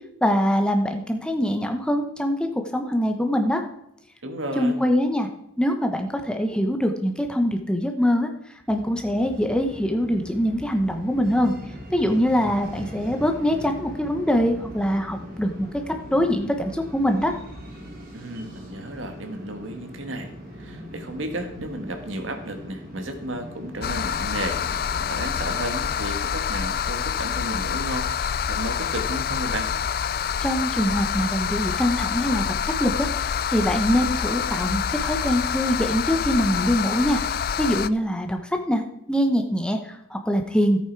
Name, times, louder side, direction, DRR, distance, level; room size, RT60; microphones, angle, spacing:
voice 1, 0.2-3.6 4.6-5.3 5.6-11.5 11.9-17.3 30.4-38.8 39.1-40.8, equal, 5° left, 5 dB, 0.9 m, -23 dB
voice 2, 4.2-4.8 18.1-20.3 20.6-29.7, right 1 dB, 80° right, 6 dB, 1.6 m, -33 dB
sound 1, 8.7-25.5, equal, 45° right, 2.7 m, -40 dB
sound 2, 23.8-37.9, left 7 dB, 45° left, 0.3 m, -27 dB
14.0 x 8.3 x 4.6 m, 0.80 s
head